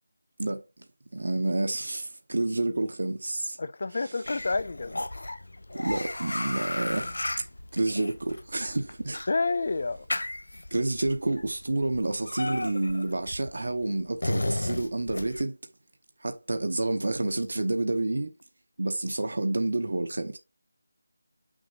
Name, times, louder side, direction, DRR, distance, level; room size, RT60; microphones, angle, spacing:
voice 1, 1.1-3.6 3.9-4.2 5.7-7.1 7.7-9.2 10.7-15.6 16.2-18.3 18.8-20.4, right 2 dB, 55° right, 0.9 m, -29 dB
voice 2, 3.6-4.9 9.3-10.1, left 3 dB, 35° left, 0.4 m, -28 dB
sound 1, 4.2-15.4, left 2 dB, 85° left, 0.6 m, -35 dB
7.4 x 6.3 x 2.9 m
figure-of-eight pair, 180°, 0 cm